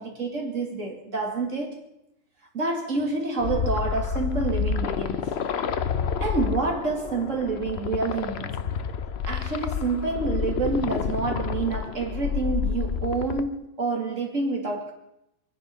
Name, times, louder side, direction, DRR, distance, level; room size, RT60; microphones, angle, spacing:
voice 1, 0.0-1.7 2.5-5.3 6.2-8.6 9.2-14.9, right 3 dB, 40° right, 2.8 m, -28 dB
sound 1, 3.4-13.4, left 6 dB, 80° left, 0.5 m, -29 dB
24.0 x 10.5 x 5.5 m
omnidirectional pair, 2.1 m